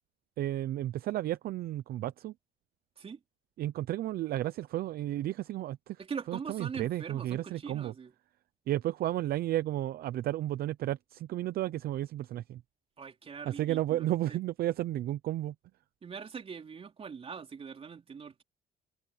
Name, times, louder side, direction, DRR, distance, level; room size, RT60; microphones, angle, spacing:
voice 1, 0.4-2.3 3.6-6.0 6.3-7.9 8.7-12.6 13.6-15.5, right 14 dB, 65° right, 0.7 m, -33 dB
voice 2, 6.0-8.1 13.0-14.4 16.0-18.4, right 6 dB, 35° right, 4.3 m, -42 dB
cardioid pair, 110°, 17 cm